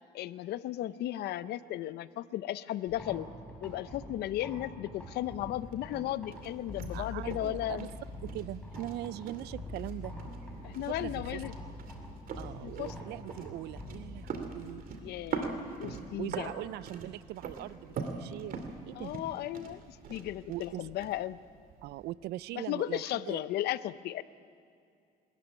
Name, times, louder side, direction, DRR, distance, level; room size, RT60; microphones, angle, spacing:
voice 1, 0.1-3.3 3.6-7.9 10.6-11.5 12.6-12.9 15.0-16.5 19.0-21.4 22.5-24.2, left 13 dB, 75° left, 16 dB, 0.7 m, -35 dB
sound 1, 2.9-17.1, left 1 dB, 5° left, 5.4 m, -45 dB
sound 2, 5.1-22.1, right 5 dB, 60° right, 2.5 m, -44 dB
voice 2, 6.9-7.9 8.2-10.1 10.8-11.4 12.4-14.8 16.2-18.6 18.9-19.1 20.5-20.9 21.8-23.4, right 15 dB, 75° right, 21 dB, 0.4 m, -41 dB
21.5 x 14.0 x 10.0 m, 2.4 s
cardioid pair, 110°, 17 cm